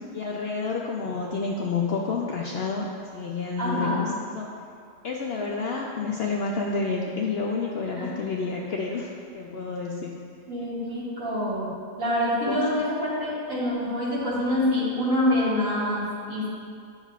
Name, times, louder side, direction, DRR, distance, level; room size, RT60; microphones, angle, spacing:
voice 1, 0.1-4.5 5.0-10.2 12.5-12.6, left 4 dB, 65° left, -1 dB, 0.6 m, -29 dB
voice 2, 3.6-4.1 8.0-8.1 10.5-11.7 12.0-16.5, left 1 dB, 65° right, -9 dB, 2.4 m, -26 dB
10.0 x 6.4 x 2.4 m, 2.3 s
omnidirectional pair, 1.5 m